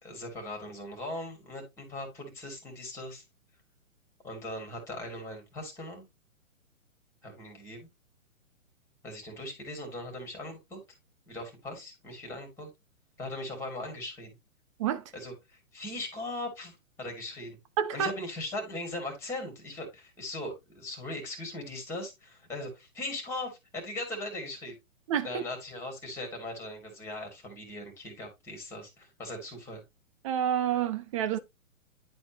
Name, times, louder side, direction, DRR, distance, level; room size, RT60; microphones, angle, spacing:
voice 1, 0.0-3.2 4.2-6.0 7.2-7.9 9.0-10.8 11.3-12.7 13.2-14.4 15.1-17.6 17.9-24.8 25.2-29.8, left 1 dB, 5° left, 2.7 m, -39 dB
voice 2, 17.8-18.1 25.1-25.4 30.2-31.4, right 9 dB, 25° right, 0.6 m, -28 dB
10.5 x 4.3 x 3.0 m
figure-of-eight pair, 130°, 42 cm